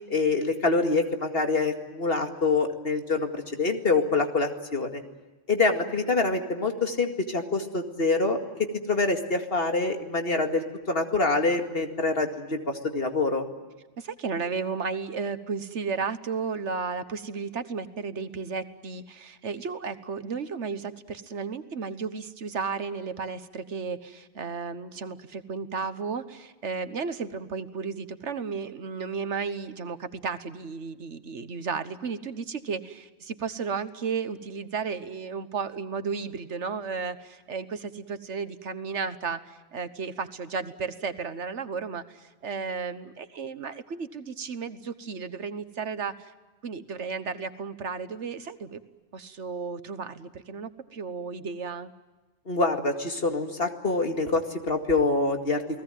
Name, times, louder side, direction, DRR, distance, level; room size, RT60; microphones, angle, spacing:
voice 1, 0.1-5.0 5.5-8.4 8.9-13.4 52.5-55.8, left 3 dB, 55° left, 6 dB, 2.4 m, -26 dB
voice 2, 14.0-46.3 46.6-48.8 49.1-51.9, right 5 dB, 75° right, 12 dB, 1.6 m, -33 dB
29.0 x 19.0 x 9.1 m, 1.2 s
omnidirectional pair, 1.2 m